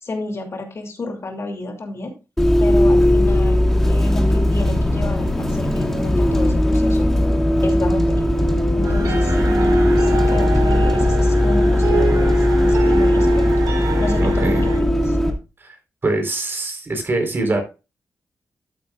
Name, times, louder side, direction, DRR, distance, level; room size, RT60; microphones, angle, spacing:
voice 1, 0.0-2.1 2.6-7.1 7.4-8.2 8.7-13.5 14.0-15.2, left 2 dB, 50° left, 3 dB, 2.7 m, -30 dB
Bus, 2.4-15.3, left 1 dB, 5° left, 2.3 m, -17 dB
sound 1, 8.8-14.8, right 5 dB, 90° right, 3.4 m, -28 dB
voice 2, 14.2-14.6 15.6-15.8 16.0-17.6, right 2 dB, 40° right, 3 dB, 4.0 m, -23 dB
13.0 x 8.6 x 2.4 m, 0.30 s
cardioid pair, 95°, 6 cm